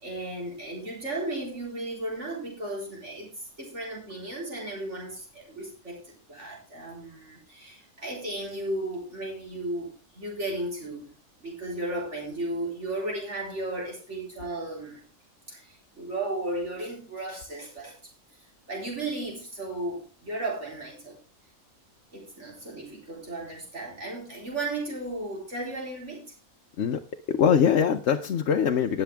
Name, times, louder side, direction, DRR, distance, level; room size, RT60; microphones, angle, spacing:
voice 1, 0.0-11.1 11.4-15.0 15.5-18.0 18.7-21.2 22.1-26.3, right 2 dB, 55° right, -3 dB, 4.5 m, -35 dB
voice 2, 27.3-29.0, left 8 dB, 60° left, 4 dB, 1.0 m, -22 dB
19.0 x 6.8 x 3.4 m, 0.32 s
omnidirectional pair, 1.4 m